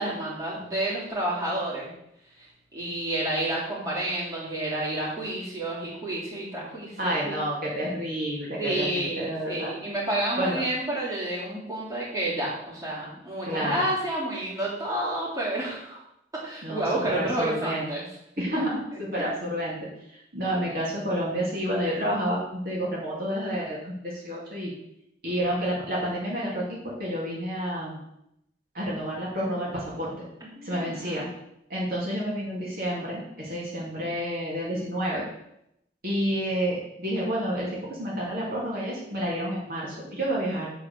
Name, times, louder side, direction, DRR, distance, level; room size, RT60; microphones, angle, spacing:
voice 1, 0.0-1.9 2.4-7.4 8.6-16.0 16.3-18.2 30.4-31.4, right 1 dB, 20° right, -7 dB, 3.3 m, -30 dB
voice 2, 7.0-9.7 10.4-10.6 13.5-13.8 16.6-16.8 17.1-17.8 18.4-18.7 19.1-19.8 20.3-24.7 25.2-28.0 28.7-30.1 30.6-31.3 31.7-35.2 36.0-40.7, equal, 55° right, -5 dB, 2.6 m, -29 dB
8.2 x 4.9 x 6.8 m, 0.80 s
head